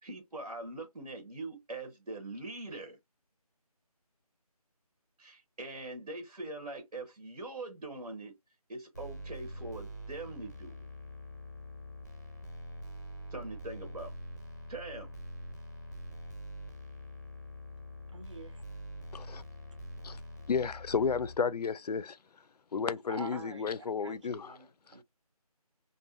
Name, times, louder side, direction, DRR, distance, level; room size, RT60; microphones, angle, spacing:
voice 1, 0.0-3.0 5.2-8.4 8.7-10.9 13.3-14.1 14.7-15.1, right 2 dB, 85° right, 0.9 m, -42 dB
sound 1, 8.9-21.3, equal, 30° left, 0.5 m, -45 dB
voice 2, 18.1-18.6 23.1-25.0, right 3 dB, 50° right, 0.6 m, -47 dB
voice 3, 20.5-22.2 22.7-24.6, left 5 dB, 85° left, 0.4 m, -32 dB
2.6 x 2.6 x 2.4 m
figure-of-eight pair, 180°, 20 cm